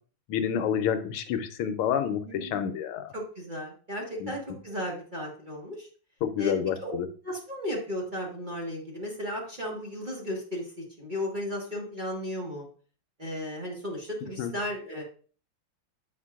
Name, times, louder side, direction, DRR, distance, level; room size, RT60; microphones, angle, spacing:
voice 1, 0.3-3.1 4.2-4.3 6.2-7.1 14.4-14.5, left 8 dB, 85° left, 9 dB, 1.6 m, -28 dB
voice 2, 2.2-2.7 3.1-5.9 6.4-6.5 6.8-6.9 7.2-12.7 13.2-15.0, left 1 dB, 25° right, -2 dB, 1.3 m, -35 dB
8.9 x 5.0 x 2.4 m, 0.40 s
omnidirectional pair, 2.4 m